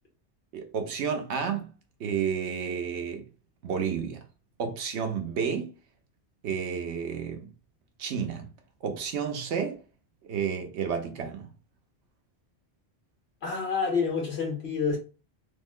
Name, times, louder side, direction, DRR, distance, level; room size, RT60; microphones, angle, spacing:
voice 1, 0.5-1.7 2.0-3.3 3.6-4.2 4.6-5.7 6.4-7.5 8.0-8.5 8.8-9.8 10.2-11.5, right 7 dB, 90° right, 1.0 m, -31 dB
voice 2, 13.4-15.0, left 5 dB, 70° left, 1.6 m, -28 dB
3.5 x 2.1 x 3.6 m
omnidirectional pair, 1.1 m